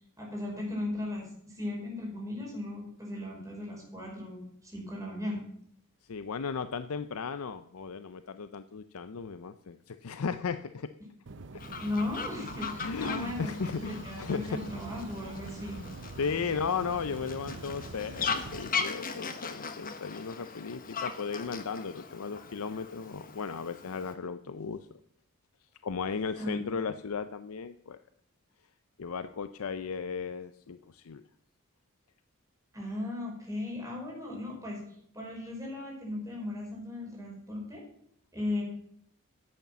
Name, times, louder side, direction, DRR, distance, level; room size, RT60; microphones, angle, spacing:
voice 1, 0.2-5.4 11.8-15.8 26.3-26.6 32.7-34.8 35.1-37.8 38.3-38.6, left 1 dB, 15° right, -2 dB, 5.1 m, -37 dB
voice 2, 6.1-10.9 12.8-14.6 15.5-15.6 16.2-24.9 25.8-28.0 29.0-31.2, left 5 dB, 70° left, 11 dB, 0.5 m, -35 dB
sound 1, 11.3-18.7, right 3 dB, 55° right, 0.7 m, -44 dB
Fowl, 11.6-24.1, left 5 dB, 40° left, 1.2 m, -39 dB
11.0 x 8.3 x 7.4 m, 0.69 s
head